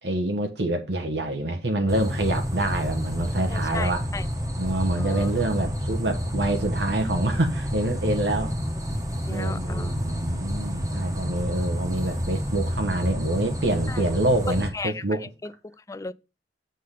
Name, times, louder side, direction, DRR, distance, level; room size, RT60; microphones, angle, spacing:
voice 1, 0.0-4.1 4.6-8.5 9.3-15.3, right 1 dB, 70° right, 1.3 m, -26 dB
sound 1, 1.9-14.7, equal, 20° right, 1.4 m, -29 dB
voice 2, 3.5-4.2 5.0-5.3 9.3-9.9 13.9-14.0 14.5-15.0 15.4-16.1, left 3 dB, 20° left, 0.4 m, -35 dB
8.0 x 3.8 x 6.5 m
head